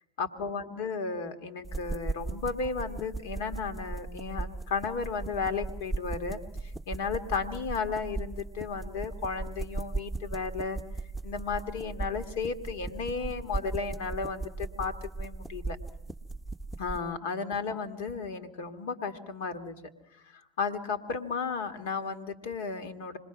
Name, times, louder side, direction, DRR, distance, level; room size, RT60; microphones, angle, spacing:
voice 1, 0.2-10.8 11.2-15.8 16.8-19.7 20.3-23.2, left 5 dB, 65° left, 8 dB, 1.7 m, -34 dB
sound 1, 1.6-17.0, right 3 dB, 5° left, 1.0 m, -37 dB
27.0 x 20.5 x 6.0 m, 0.89 s
hypercardioid pair, 75°, 0 cm